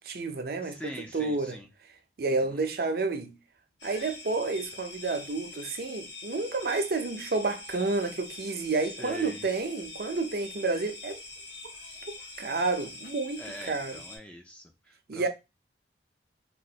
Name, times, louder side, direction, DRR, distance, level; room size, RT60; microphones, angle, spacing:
voice 1, 0.1-1.6 2.2-3.3 3.8-11.2 12.1-14.0 15.1-15.3, right 3 dB, 55° right, 0.5 m, -30 dB
voice 2, 0.6-1.7 2.3-2.6 9.0-9.5 13.4-15.3, equal, 5° left, 0.3 m, -44 dB
sound 1, 3.8-14.2, left 3 dB, 75° left, 0.9 m, -44 dB
3.0 x 2.5 x 2.7 m
head